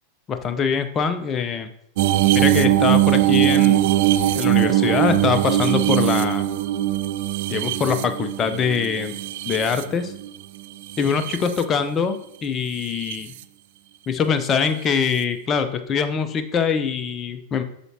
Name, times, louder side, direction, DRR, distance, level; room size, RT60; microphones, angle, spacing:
voice 1, 0.3-1.7 2.3-3.9 4.3-6.5 7.5-9.1 9.4-10.1 11.0-13.3 14.1-17.6, left 6 dB, 25° left, 8 dB, 0.7 m, -23 dB
sound 1, 2.0-10.3 10.9-11.6 12.8-13.2 14.9-15.0, right 13 dB, 50° right, 0.3 m, -20 dB
8.1 x 5.9 x 2.8 m, 0.75 s
figure-of-eight pair, 90°, 0 cm